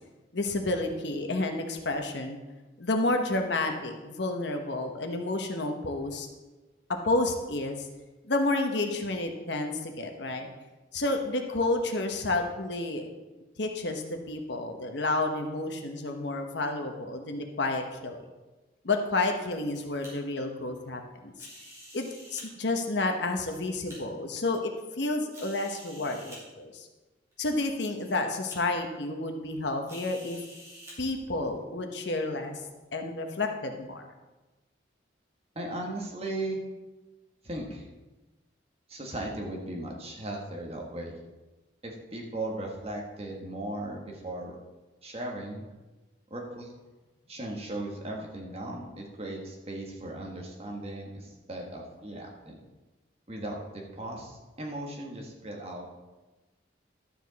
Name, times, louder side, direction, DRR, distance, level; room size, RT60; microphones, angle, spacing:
voice 1, 0.3-2.4 2.8-6.3 6.9-7.9 8.3-10.5 10.9-13.1 13.6-18.2 18.8-21.3 21.9-26.9 27.4-30.4 31.0-32.6 32.9-34.0, left 2 dB, 65° left, 4 dB, 1.1 m, -30 dB
sound 1, 19.4-20.1 21.3-22.5 23.2-24.0 24.6-24.7 25.3-26.4 27.3-27.4 27.8-28.2 28.5-28.6 29.9-30.9, equal, 15° right, 3.4 m, -49 dB
voice 2, 35.5-36.6 37.4-37.9 38.9-41.1 41.8-44.6 45.0-45.6 46.3-46.7 47.3-52.6 53.3-55.9, right 1 dB, 30° right, -1 dB, 1.5 m, -37 dB
12.0 x 7.2 x 4.1 m, 1.2 s
head